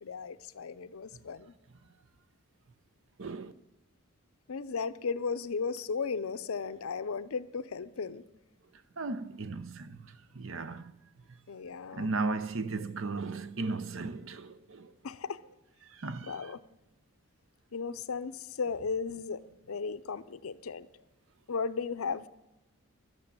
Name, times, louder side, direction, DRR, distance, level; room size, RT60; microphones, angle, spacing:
voice 1, 0.0-1.5 4.5-8.2 11.5-12.1 15.0-15.4 16.3-16.6 17.7-18.3 18.6-20.9 21.5-22.3, left 5 dB, 75° left, 0.6 m, -35 dB
voice 2, 3.2-3.5 9.0-10.0 10.3-10.9 11.9-14.9 16.0-16.5, right 3 dB, 60° right, 0.7 m, -35 dB
11.5 x 8.3 x 8.6 m
head